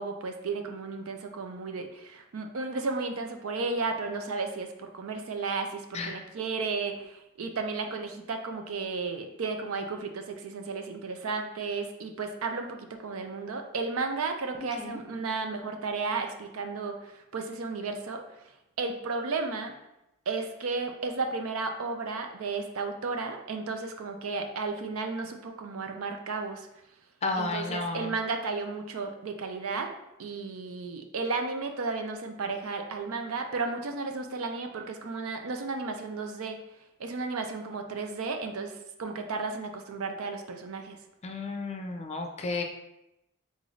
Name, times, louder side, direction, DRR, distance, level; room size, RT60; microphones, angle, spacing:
voice 1, 0.0-12.8 13.0-18.2 18.8-19.7 20.3-26.7 27.4-29.9 30.2-36.6 37.0-41.0, right 4 dB, 75° right, 5 dB, 0.5 m, -33 dB
voice 2, 14.5-15.0 27.2-28.1 41.2-42.6, left 3 dB, 30° left, 4 dB, 0.5 m, -33 dB
3.9 x 3.8 x 3.2 m, 0.88 s
head